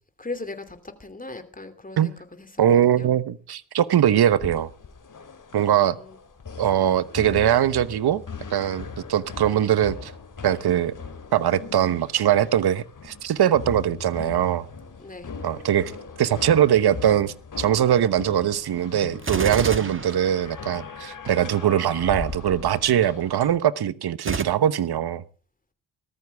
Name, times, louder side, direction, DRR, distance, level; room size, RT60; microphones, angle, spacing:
voice 1, 0.2-3.1 5.6-6.2 15.0-15.3, left 2 dB, 20° left, 2.9 m, -39 dB
voice 2, 2.6-4.7 5.5-6.0 6.6-8.2 8.5-10.1 10.4-10.9 11.3-14.7 15.4-15.9 16.2-25.2, right 10 dB, 60° right, 1.1 m, -21 dB
sound 1, 4.3-23.6, left 5 dB, 45° left, 2.7 m, -39 dB
Gunshot gunfire, 19.2-21.0 24.2-24.4, right 3 dB, 25° right, 1.7 m, -29 dB
18.5 x 14.0 x 3.5 m
supercardioid pair, 55°, 44 cm